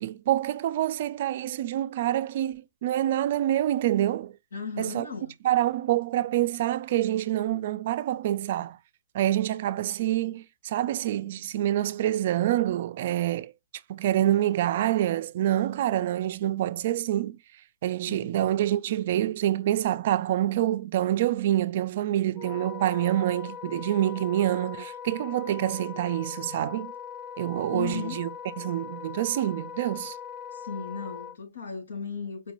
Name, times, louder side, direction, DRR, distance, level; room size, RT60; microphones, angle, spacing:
voice 1, 0.0-4.4 4.8-5.1 5.4-8.8 9.1-13.5 13.9-17.4 17.8-26.9 27.4-28.3 28.6-30.1, right 13 dB, 50° right, 0.4 m, -26 dB
voice 2, 4.5-5.3 18.1-18.3 27.7-28.2 30.5-32.5, left 5 dB, 85° left, 2.3 m, -36 dB
Wind instrument woodwind instrument, 22.3-31.4, left 8 dB, 20° left, 0.3 m, -40 dB
4.5 x 2.5 x 2.9 m
hypercardioid pair, 160°, 0 cm